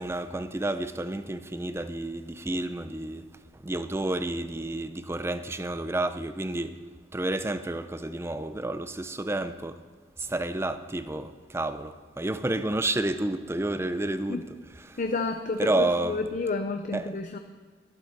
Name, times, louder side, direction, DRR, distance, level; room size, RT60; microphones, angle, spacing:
voice 1, 0.0-3.3 3.5-6.8 7.1-9.8 10.2-14.4 14.8-15.0 15.6-16.2 16.9-17.1, right 2 dB, 15° right, 0.5 m, -30 dB
voice 2, 15.0-17.4, left 3 dB, 45° left, 0.6 m, -30 dB
12.0 x 8.6 x 6.6 m
head